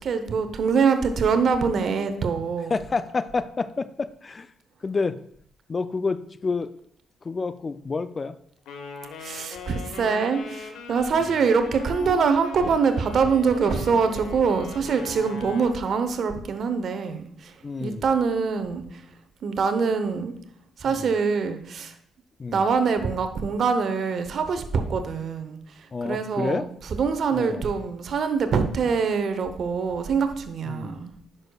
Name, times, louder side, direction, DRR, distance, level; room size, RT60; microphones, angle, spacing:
voice 1, 0.0-2.8 9.2-19.1 19.4-20.3 20.8-22.0 22.5-31.1, right 5 dB, 65° right, 9 dB, 0.8 m, -24 dB
voice 2, 2.7-4.5 4.8-5.2 5.7-6.7 7.2-8.4 17.6-18.0 20.9-21.1 22.4-22.6 25.9-26.6 27.3-27.6 30.7-31.0, left 4 dB, 35° left, 13 dB, 0.4 m, -29 dB
Wind instrument woodwind instrument, 8.7-15.8, left 4 dB, 85° left, 1.1 m, -40 dB
9.9 x 6.3 x 2.3 m, 0.66 s
supercardioid pair, 70°, 0 cm